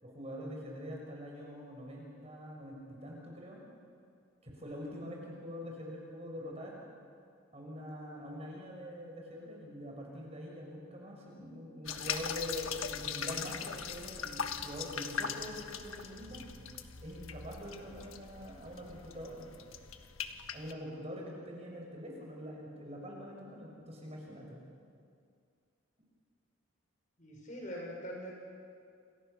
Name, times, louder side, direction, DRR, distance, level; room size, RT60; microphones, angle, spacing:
voice 1, 0.0-3.6 4.4-6.8 7.5-16.4 17.0-19.6 20.5-24.6, equal, 30° right, -1 dB, 6.1 m, -44 dB
sound 1, 11.9-20.7, left 7 dB, 80° left, 1.5 m, -40 dB
voice 2, 27.2-28.3, equal, 35° left, -1 dB, 6.4 m, -42 dB
28.5 x 27.0 x 6.8 m, 2.3 s
head